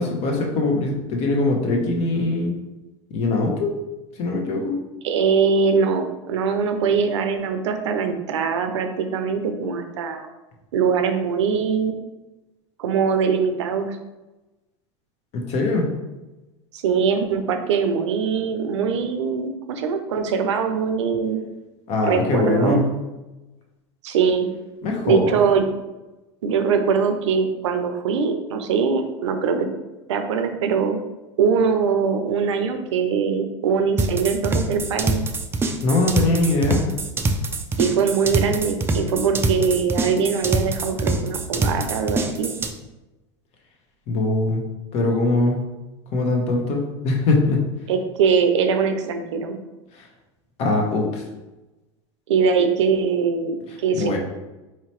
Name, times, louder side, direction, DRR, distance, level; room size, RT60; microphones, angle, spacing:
voice 1, 0.0-2.5 3.1-3.7 4.2-4.7 15.3-15.9 21.9-22.8 24.8-25.4 35.8-36.8 44.1-44.6 44.9-45.6 46.1-47.6 49.9-50.1 50.6-51.2 53.9-54.2, left 2 dB, 45° left, 1 dB, 0.9 m, -21 dB
voice 2, 5.0-10.3 10.7-11.9 12.8-14.0 16.7-21.5 22.0-22.8 24.0-24.5 25.0-25.6 26.4-29.7 30.1-31.0 31.4-35.2 37.8-42.5 47.9-49.6 52.3-54.2, right 6 dB, 85° right, 7 dB, 0.5 m, -22 dB
sound 1, 34.0-42.7, right 2 dB, 15° right, 0.3 m, -24 dB
4.4 x 2.8 x 3.0 m, 1.1 s
hypercardioid pair, 110°, 15 cm